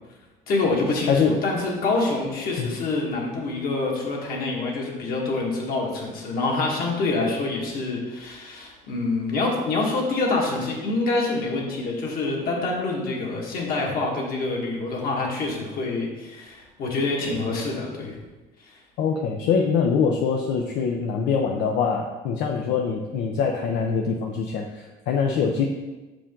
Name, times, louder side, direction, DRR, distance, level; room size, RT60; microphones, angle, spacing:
voice 1, 0.5-18.2 18.7-18.8, left 3 dB, 60° left, -1 dB, 1.7 m, -26 dB
voice 2, 1.1-1.4 2.6-2.7 19.0-25.7, left 6 dB, 80° left, 1 dB, 0.6 m, -23 dB
7.0 x 5.0 x 3.7 m, 1.2 s
cardioid pair, 125°, 17 cm